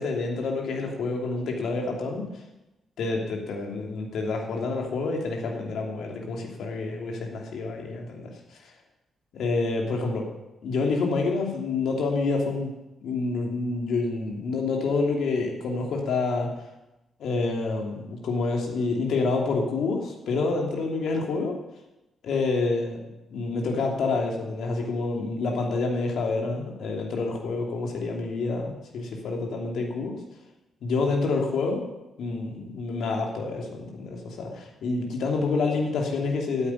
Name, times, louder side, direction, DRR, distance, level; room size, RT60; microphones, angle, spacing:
voice 1, 0.0-2.3 3.0-8.3 8.6-8.7 9.3-10.3 10.6-12.7 13.0-16.5 17.2-21.6 22.2-23.0 23.3-30.2 30.8-31.8 32.2-36.7, left 3 dB, 70° left, 1 dB, 3.0 m, -28 dB
10.0 x 8.7 x 9.8 m, 0.98 s
hypercardioid pair, 45°, 0 cm